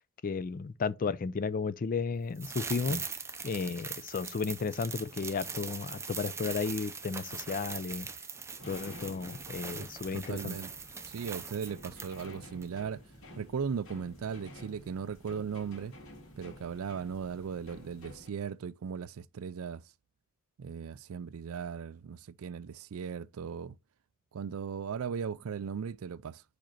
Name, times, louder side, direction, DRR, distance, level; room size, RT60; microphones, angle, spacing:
voice 1, 0.2-3.0 3.4-8.1 8.7-10.6, left 4 dB, 40° left, 0.4 m, -33 dB
sound 1, 2.4-12.3 12.6-12.7, right 5 dB, 15° right, 0.5 m, -41 dB
sound 2, 8.6-18.3, left 1 dB, 65° left, 2.0 m, -51 dB
voice 2, 10.1-10.7 11.0-13.1 13.4-15.9 16.4-19.8 20.6-23.8 24.3-26.4, right 6 dB, 80° right, 0.4 m, -37 dB
5.1 x 5.0 x 4.4 m
head